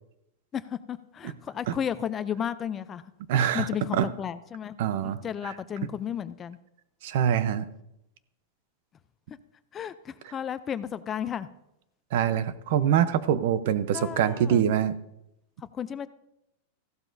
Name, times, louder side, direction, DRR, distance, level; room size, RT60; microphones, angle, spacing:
voice 1, 0.5-3.0 3.4-6.6 9.3-9.4 9.7-11.5 13.9-14.6 15.7-16.1, left 8 dB, 20° left, 14 dB, 0.4 m, -33 dB
voice 2, 3.3-4.1 4.8-5.5 7.0-7.7 12.1-14.9, right 9 dB, 60° right, 14 dB, 0.7 m, -25 dB
15.0 x 12.0 x 2.7 m, 0.85 s
supercardioid pair, 145°, 0 cm